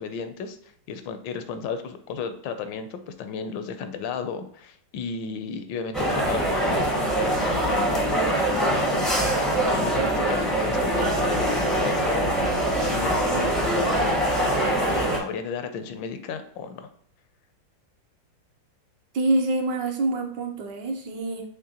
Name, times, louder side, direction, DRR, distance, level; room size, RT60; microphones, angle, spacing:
voice 1, 0.0-12.5 12.8-16.9, left 5 dB, 80° left, 9 dB, 1.3 m, -34 dB
sound 1, 5.9-15.2, right 1 dB, ahead, 0.4 m, -23 dB
voice 2, 19.1-21.4, right 2 dB, 70° right, 3 dB, 1.3 m, -26 dB
5.9 x 3.1 x 2.8 m, 0.64 s
omnidirectional pair, 2.1 m